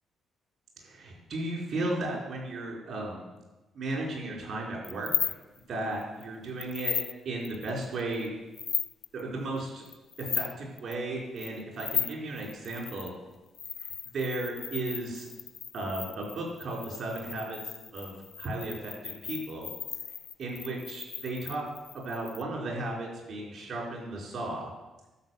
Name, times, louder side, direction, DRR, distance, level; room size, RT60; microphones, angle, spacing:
voice 1, 0.8-3.3 3.7-5.3 5.7-7.0 7.2-8.3 9.1-9.8 10.2-13.1 14.1-15.3 15.7-17.6 17.9-19.7 20.4-21.6 21.9-24.6, right 2 dB, 65° right, -2 dB, 4.6 m, -35 dB
sound 1, 4.8-5.6 6.0-6.2 6.6-7.1 7.4-8.3 8.5-9.2 9.9-10.5 10.8-10.9 11.4-13.1 13.5-22.4, left 7 dB, 55° left, 0.4 m, -36 dB
12.0 x 5.4 x 7.8 m, 1.1 s
cardioid pair, 90°, 0 cm